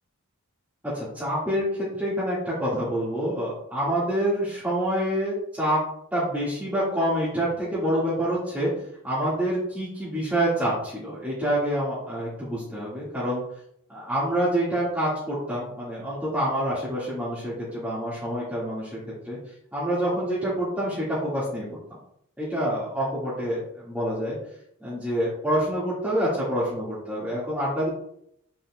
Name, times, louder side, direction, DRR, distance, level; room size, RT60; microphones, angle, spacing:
voice 1, 0.8-5.8 6.1-8.7 9.0-13.4 13.9-19.4 19.7-21.8 22.4-24.4 24.8-27.9, equal, 5° right, -11 dB, 1.8 m, -27 dB
8.5 x 6.1 x 2.3 m, 0.73 s
head